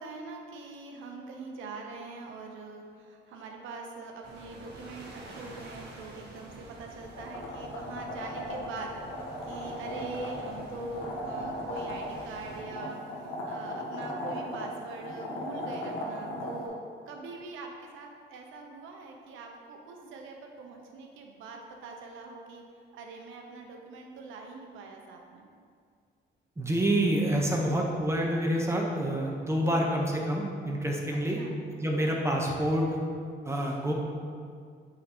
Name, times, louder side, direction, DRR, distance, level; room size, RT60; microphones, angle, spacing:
voice 1, 0.0-9.0 9.4-16.8 17.0-22.6 22.9-25.5 31.1-31.6, right 3 dB, 85° right, 2 dB, 0.8 m, -43 dB
sound 1, 4.2-12.6, right 2 dB, 55° right, 1.2 m, -48 dB
sound 2, 7.0-16.7, left 1 dB, 90° left, 0.9 m, -37 dB
voice 2, 26.6-31.4 31.8-33.0 33.4-33.9, right 1 dB, 15° right, -1 dB, 1.0 m, -27 dB
8.3 x 4.0 x 2.9 m, 2.2 s
cardioid pair, 90°, 20 cm